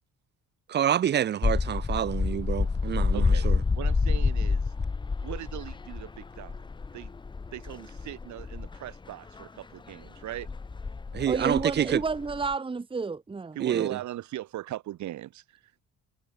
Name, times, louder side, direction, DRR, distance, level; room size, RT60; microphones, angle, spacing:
voice 1, 0.7-3.6 11.1-12.0 13.6-14.0, right 10 dB, 35° right, 0.4 m, -27 dB
sound 1, 1.4-9.4 10.1-12.5, left 4 dB, 15° left, 0.5 m, -28 dB
voice 2, 3.1-3.5 3.7-4.7 5.2-6.6 6.9-7.1 7.5-10.5 13.6-15.8, right 14 dB, 70° right, 1.0 m, -39 dB
voice 3, 11.3-13.9, right 4 dB, 15° right, 0.9 m, -31 dB
cardioid pair, 90°, 30 cm